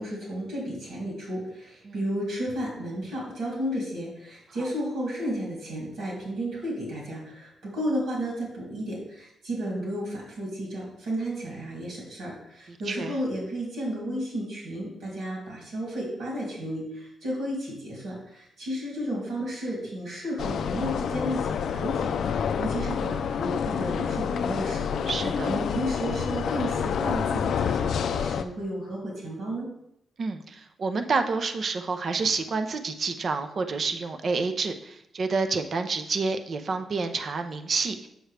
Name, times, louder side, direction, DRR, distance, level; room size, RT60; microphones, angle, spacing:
voice 1, 0.0-25.0 25.4-29.7, equal, 75° right, -4 dB, 2.7 m, -33 dB
sound 1, 20.4-28.4, left 7 dB, 70° left, 0.4 m, -28 dB
voice 2, 25.1-25.5 30.2-38.1, right 4 dB, 45° right, 7 dB, 0.6 m, -28 dB
7.9 x 6.1 x 3.3 m, 0.78 s
wide cardioid pair, 140°, 0 cm